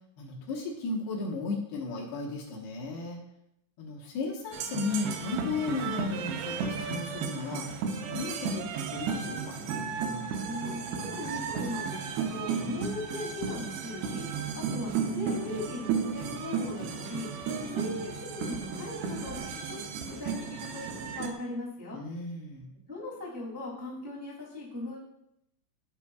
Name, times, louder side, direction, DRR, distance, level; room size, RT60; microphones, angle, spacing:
voice 1, 0.2-3.2 3.8-7.7 8.0-9.6 21.9-22.7, left 3 dB, 70° left, -2 dB, 2.9 m, -35 dB
sound 1, 4.5-21.3, right 6 dB, 80° right, 2.4 m, -34 dB
voice 2, 10.4-14.2 14.5-19.4 19.7-19.8 20.1-22.0 22.9-25.0, left 2 dB, 20° right, -5 dB, 0.4 m, -39 dB
15.0 x 5.9 x 2.3 m, 0.80 s
omnidirectional pair, 5.3 m